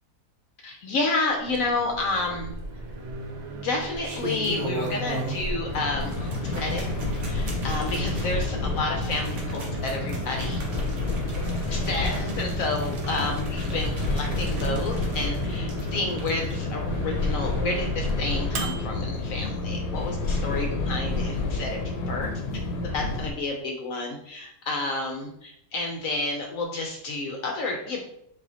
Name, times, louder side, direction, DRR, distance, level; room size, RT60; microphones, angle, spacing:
voice 1, 0.6-2.5 3.6-6.9 7.3-10.6 11.7-21.8 22.1-22.3 22.8-28.0, left 2 dB, 65° left, 1 dB, 0.9 m, -30 dB
Microwave oven, 1.3-20.1, right 3 dB, 80° right, 1.1 m, -38 dB
sound 1, 2.3-2.9 3.8-5.6 5.9-16.5 16.9-17.0, right 1 dB, 55° right, 1.0 m, -37 dB
sound 2, 5.7-23.3, left 3 dB, 80° left, 1.2 m, -29 dB
5.2 x 2.7 x 2.7 m, 0.73 s
omnidirectional pair, 1.8 m